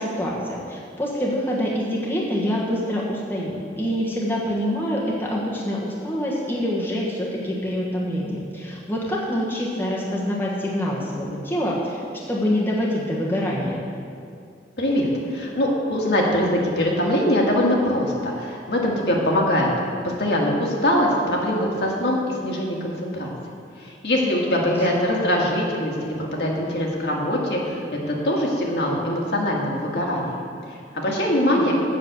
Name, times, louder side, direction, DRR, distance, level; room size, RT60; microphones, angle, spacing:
voice 1, 0.0-12.0 12.3-13.8 24.6-24.7 31.5-31.6, equal, 10° left, -5 dB, 1.2 m, -26 dB
voice 2, 14.8-19.7 20.0-23.3 23.8-27.8 28.1-30.3 30.9-31.7, left 1 dB, 70° left, -2 dB, 1.7 m, -22 dB
7.7 x 6.4 x 7.9 m, 2.4 s
head